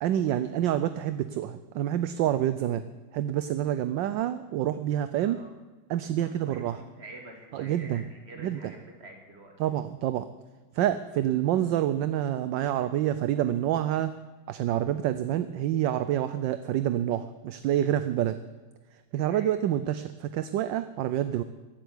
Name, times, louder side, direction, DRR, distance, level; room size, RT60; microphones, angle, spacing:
voice 1, 0.0-2.8 3.1-5.4 5.9-6.8 7.5-8.1 8.4-8.7 9.6-10.3 10.7-14.1 14.5-18.4 19.1-21.4, right 11 dB, 70° right, 12 dB, 1.2 m, -27 dB
voice 2, 5.2-5.5 6.2-9.6 19.3-19.6, right 2 dB, 30° right, 2 dB, 2.7 m, -47 dB
15.5 x 8.1 x 9.8 m, 1.3 s
omnidirectional pair, 2.2 m